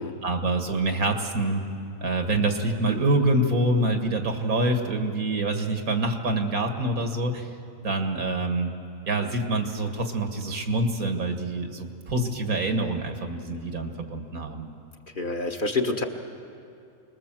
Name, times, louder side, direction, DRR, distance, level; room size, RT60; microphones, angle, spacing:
voice 1, 0.2-1.6 2.0-7.5 7.8-8.7 9.1-14.7, right 2 dB, 85° right, 5 dB, 2.2 m, -26 dB
voice 2, 15.1-16.0, left 3 dB, 40° left, 3 dB, 1.4 m, -27 dB
26.5 x 20.5 x 7.5 m, 2.5 s
omnidirectional pair, 1.4 m